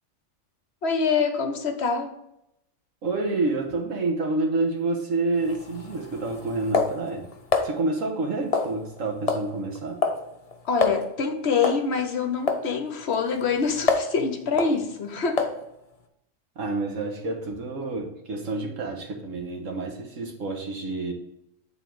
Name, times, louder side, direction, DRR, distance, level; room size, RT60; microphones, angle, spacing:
voice 1, 0.8-2.2 10.6-15.5, left 5 dB, 60° left, 6 dB, 0.9 m, -25 dB
voice 2, 3.0-7.2 7.6-10.0 16.6-21.1, right 3 dB, 70° right, 1 dB, 1.6 m, -28 dB
sound 1, 5.4-7.7 8.5-9.0 9.3-9.5 9.8-10.2 10.5-10.6 10.8-11.0 11.6-11.9 12.5-12.6 13.1-14.2 14.6-14.8 15.4-15.6, left 4 dB, 35° left, 0.6 m, -26 dB
9.1 x 3.9 x 4.6 m, 0.86 s
omnidirectional pair, 1.4 m